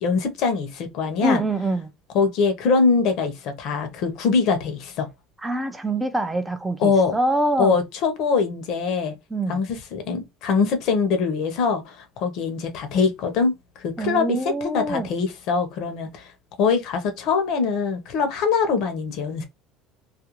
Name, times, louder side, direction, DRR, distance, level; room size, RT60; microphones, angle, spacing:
voice 1, 0.0-1.4 2.1-5.1 6.8-7.2 7.6-9.2 9.5-13.5 13.8-16.3 16.6-19.4, left 5 dB, 50° left, 0.7 m, -23 dB
voice 2, 1.2-1.9 5.4-7.8 9.3-9.6 14.0-15.1, right 1 dB, 10° right, 0.3 m, -25 dB
2.4 x 2.2 x 2.9 m
cardioid pair, 160°, 0 cm